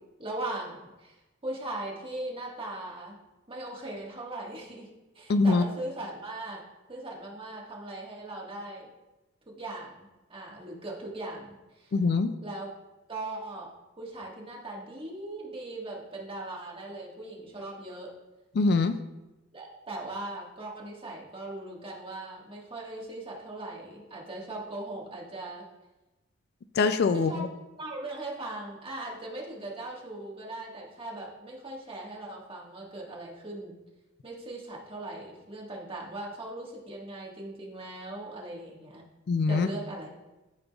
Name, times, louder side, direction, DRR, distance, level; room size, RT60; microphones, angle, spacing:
voice 1, 0.2-1.2 1.4-3.2 3.5-4.9 5.1-6.6 6.9-8.9 9.5-11.9 12.4-12.7 13.1-13.7 14.0-18.1 19.5-25.6 27.1-27.5 27.8-33.7 34.2-39.0 39.5-40.1, right 2 dB, 25° right, -3 dB, 1.6 m, -39 dB
voice 2, 5.3-5.6 11.9-12.3 18.5-19.0 26.8-27.5 39.3-39.7, left 4 dB, 50° left, 10 dB, 0.3 m, -23 dB
12.5 x 5.1 x 2.4 m, 1.1 s
head